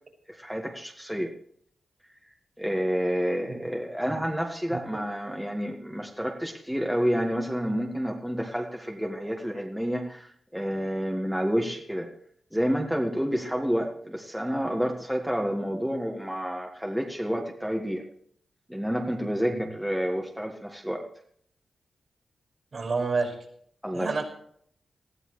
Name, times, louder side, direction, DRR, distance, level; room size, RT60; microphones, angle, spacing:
voice 1, 0.3-1.3 2.6-12.1 12.5-18.0 18.7-21.1 23.8-24.2, equal, 5° right, 1 dB, 1.7 m, -29 dB
voice 2, 22.7-23.3 23.9-24.2, right 4 dB, 55° right, 3 dB, 5.4 m, -28 dB
20.0 x 14.0 x 3.2 m, 0.65 s
cardioid pair, 70°, 0 cm